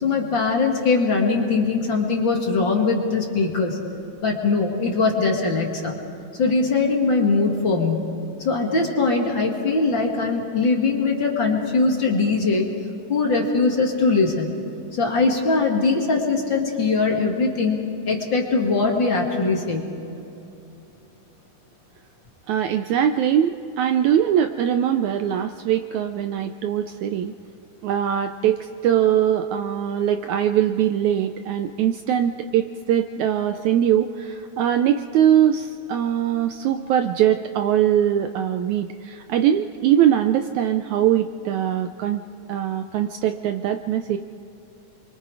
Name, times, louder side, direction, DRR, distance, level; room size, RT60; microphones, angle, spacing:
voice 1, 0.0-3.8 4.2-5.9 6.4-8.1 8.4-12.7 13.1-14.5 15.0-17.8 18.1-19.9, left 3 dB, 40° left, -1 dB, 2.4 m, -21 dB
voice 2, 22.5-27.3 27.8-42.2 42.5-44.2, right 10 dB, 75° right, 8 dB, 1.8 m, -21 dB
28.5 x 24.0 x 4.8 m, 2.8 s
omnidirectional pair, 3.8 m